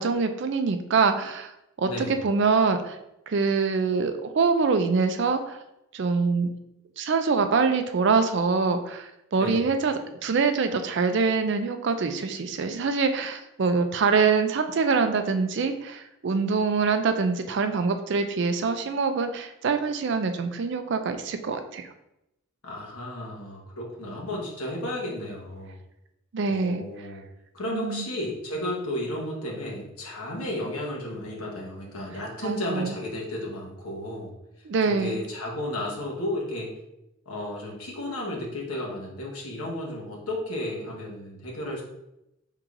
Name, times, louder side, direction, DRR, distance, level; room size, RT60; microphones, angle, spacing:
voice 1, 0.0-1.5 1.8-3.0 3.3-5.6 5.9-6.5 7.0-21.9 26.3-26.8 27.7-28.1 32.4-33.0 34.6-35.2, right 4 dB, 55° right, 8 dB, 0.4 m, -24 dB
voice 2, 1.8-2.2 9.4-9.6 22.6-25.8 26.5-27.3 27.5-34.3 34.8-36.7 37.3-41.8, left 1 dB, 85° left, -2 dB, 1.1 m, -33 dB
4.6 x 3.6 x 2.5 m, 0.86 s
head